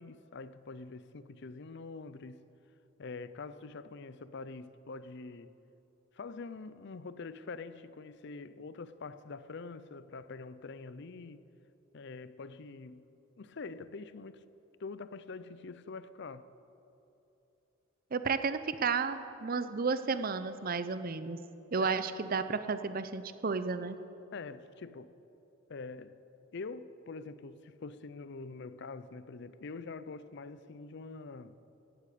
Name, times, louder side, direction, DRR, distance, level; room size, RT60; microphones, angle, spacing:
voice 1, 0.0-2.5 3.0-5.5 6.1-11.4 11.9-13.1 13.4-14.4 14.8-16.5 21.8-22.0 24.3-25.1 25.7-26.2 26.5-31.6, left 4 dB, 60° left, 0.5 m, -45 dB
voice 2, 18.1-21.4 21.7-24.0, right 5 dB, 45° right, 0.6 m, -32 dB
16.0 x 8.3 x 8.5 m
head